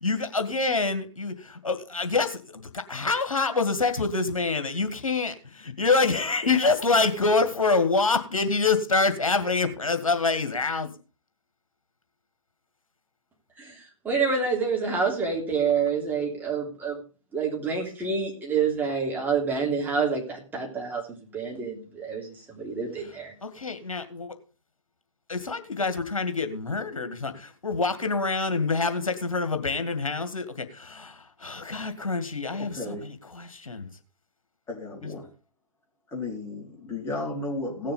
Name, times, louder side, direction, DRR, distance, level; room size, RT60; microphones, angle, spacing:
voice 1, 0.0-10.9 23.4-24.3 25.3-33.9, left 3 dB, 75° left, 8 dB, 2.0 m, -26 dB
voice 2, 13.6-17.0 17.3-21.0 21.3-23.3, right 5 dB, 10° right, -1 dB, 3.3 m, -27 dB
voice 3, 32.6-33.0 34.7-35.3 36.1-37.9, left 2 dB, 15° left, -1 dB, 3.7 m, -33 dB
17.0 x 6.7 x 5.3 m, 0.35 s
figure-of-eight pair, 120°, 18 cm